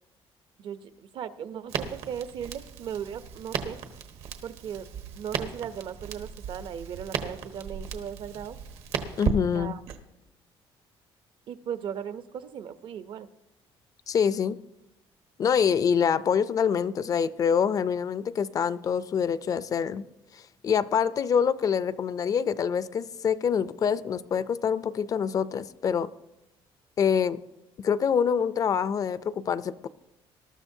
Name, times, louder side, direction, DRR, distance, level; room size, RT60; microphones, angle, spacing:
voice 1, 0.6-3.8 4.4-4.9 5.2-8.6 9.5-9.8 11.5-13.3, right 8 dB, 55° right, 12 dB, 0.6 m, -37 dB
Crackle, 1.7-10.0, right 7 dB, 75° right, 1.2 m, -35 dB
voice 2, 9.2-9.7 14.1-14.6 15.4-20.0 20.3-26.1 27.0-27.4 27.8-29.9, left 7 dB, 35° left, 16 dB, 0.4 m, -25 dB
20.0 x 12.5 x 2.7 m, 0.91 s
cardioid pair, 150°, 10 cm